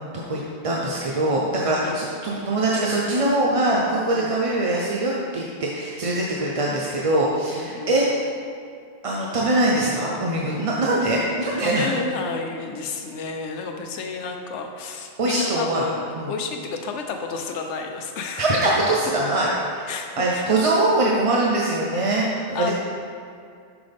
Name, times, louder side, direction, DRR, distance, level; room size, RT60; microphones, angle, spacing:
voice 1, 0.6-8.3 9.0-11.9 15.2-15.9 16.2-16.3 18.4-22.7, right 2 dB, 40° right, -3 dB, 0.6 m, -22 dB
voice 2, 7.5-7.9 11.6-18.5 19.9-20.5 22.5-22.7, left 4 dB, 85° left, 4 dB, 1.0 m, -31 dB
7.6 x 5.9 x 3.5 m, 2.3 s
omnidirectional pair, 1.2 m